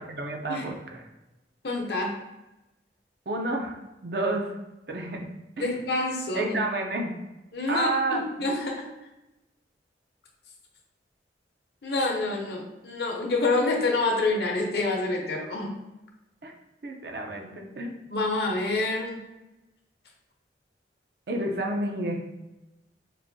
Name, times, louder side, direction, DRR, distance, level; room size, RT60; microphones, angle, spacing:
voice 1, 0.1-1.0 3.3-3.8 4.0-4.5 4.9-5.3 5.6-5.8 6.3-7.1 7.7-8.2 16.4-16.5 16.8-18.0 21.3-22.2, right 2 dB, 60° right, 2 dB, 0.6 m, -30 dB
voice 2, 1.6-2.1 5.6-6.6 7.5-8.9 11.8-15.7 18.1-19.2, left 2 dB, 65° left, 0 dB, 0.8 m, -27 dB
4.7 x 2.6 x 2.6 m, 0.99 s
head